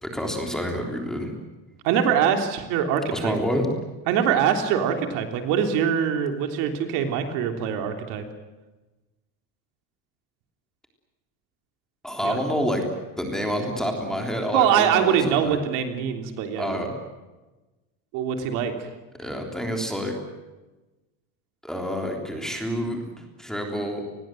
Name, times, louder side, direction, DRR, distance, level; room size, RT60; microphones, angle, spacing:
voice 1, 0.0-1.3 3.1-3.7 12.0-12.8 13.2-15.6 16.6-16.9 19.2-20.1 21.6-24.0, equal, ahead, 2 dB, 3.5 m, -28 dB
voice 2, 1.8-3.4 4.1-8.2 12.2-12.4 14.5-16.9 18.1-18.9, right 8 dB, 50° right, 6 dB, 3.3 m, -23 dB
29.5 x 21.5 x 7.8 m, 1.1 s
cardioid pair, 165°, 40 cm